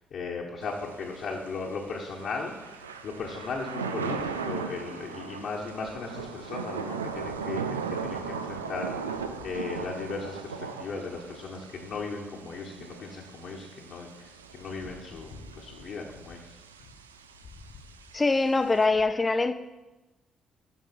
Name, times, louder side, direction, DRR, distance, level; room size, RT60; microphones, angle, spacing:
voice 1, 0.0-7.6 7.9-16.6 17.6-17.7, left 4 dB, 55° left, -2 dB, 1.3 m, -37 dB
Thunder / Rain, 0.6-18.9, right 5 dB, 80° right, 0.4 m, -38 dB
voice 2, 18.1-19.5, left 3 dB, 25° left, 10 dB, 0.6 m, -23 dB
11.5 x 6.1 x 4.5 m, 1.1 s
figure-of-eight pair, 45°, 0 cm